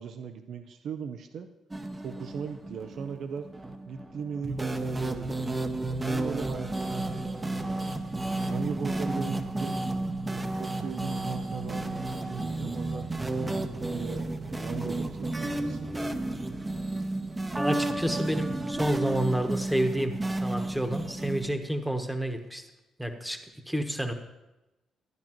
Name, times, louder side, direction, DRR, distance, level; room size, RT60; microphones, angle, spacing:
voice 1, 0.0-1.5 2.0-3.5 3.9-5.5 6.0-8.0 8.4-9.8 10.5-13.1 13.7-15.9, right 6 dB, 65° right, 8 dB, 0.5 m, -38 dB
sound 1, 1.7-21.5, right 2 dB, 20° right, 0.7 m, -32 dB
voice 2, 17.6-22.6 23.0-23.4 23.7-24.1, right 1 dB, ahead, 5 dB, 1.1 m, -29 dB
12.0 x 10.0 x 3.0 m, 0.99 s
cardioid pair, 90°, 0 cm